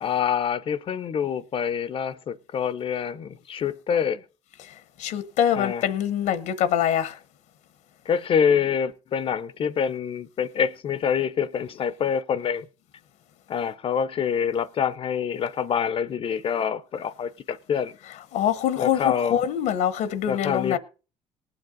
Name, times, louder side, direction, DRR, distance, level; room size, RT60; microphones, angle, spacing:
voice 1, 0.0-4.2 5.5-5.8 8.1-12.7 13.5-18.0 18.8-19.4 20.3-20.8, left 7 dB, 45° left, 0.6 m, -26 dB
voice 2, 4.6-7.2 18.3-20.8, left 10 dB, 75° left, 0.9 m, -25 dB
19.0 x 7.8 x 3.8 m
cardioid pair, 100°, 13 cm